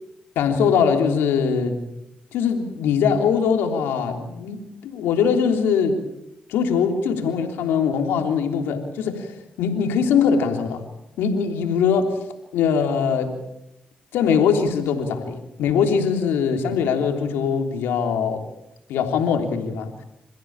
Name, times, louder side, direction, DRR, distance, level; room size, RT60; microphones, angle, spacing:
voice 1, 0.3-1.8 2.3-6.0 6.5-10.8 11.2-12.2 12.5-13.4 14.1-18.4 18.9-19.9, left 6 dB, 90° left, 4 dB, 3.3 m, -22 dB
28.0 x 15.5 x 8.8 m, 0.87 s
supercardioid pair, 50°, 4 cm